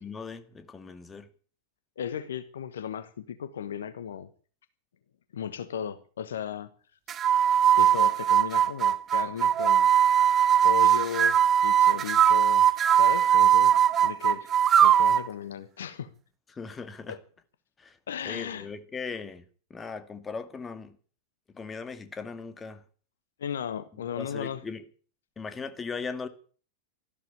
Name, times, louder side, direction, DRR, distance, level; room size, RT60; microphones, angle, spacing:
voice 1, 0.0-1.3 13.3-13.4 16.5-17.2 17.8-18.0 18.3-19.4 19.7-21.0 21.5-22.8 24.2-24.8 25.4-26.3, left 5 dB, 15° left, 2.0 m, -38 dB
voice 2, 2.0-4.3 5.3-6.7 7.7-9.9 10.6-13.7 14.0-14.5 14.8-16.1 17.1-17.2 18.1-18.7 23.4-24.6, left 8 dB, 65° left, 1.2 m, -35 dB
sound 1, 7.1-15.3, right 9 dB, 25° right, 1.1 m, -21 dB
13.5 x 12.5 x 8.5 m
figure-of-eight pair, 90°, 0 cm